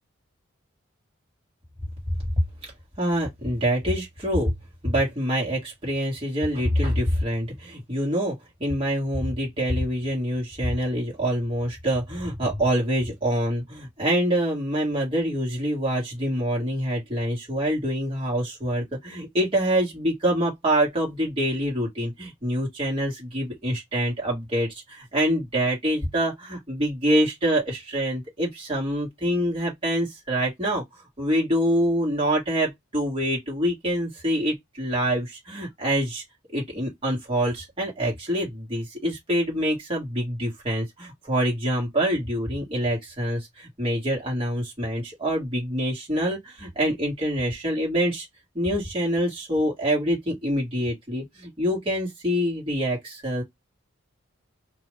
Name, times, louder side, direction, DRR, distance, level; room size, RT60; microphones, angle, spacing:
voice 1, 3.0-4.5 4.8-30.8 31.2-36.2 36.5-48.3 48.5-53.4, equal, 25° right, 1.5 m, -25 dB
2.5 x 2.3 x 3.2 m
head